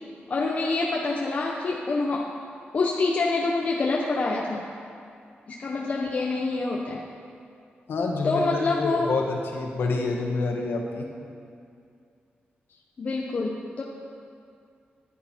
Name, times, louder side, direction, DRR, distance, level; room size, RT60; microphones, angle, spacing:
voice 1, 0.3-2.4 2.7-4.6 5.5-7.0 8.2-9.1 13.0-13.8, left 3 dB, 40° left, -1 dB, 0.8 m, -26 dB
voice 2, 7.9-11.1, left 3 dB, 85° left, 1 dB, 1.5 m, -28 dB
14.5 x 10.0 x 4.5 m, 2.4 s
wide cardioid pair, 175°, 4 cm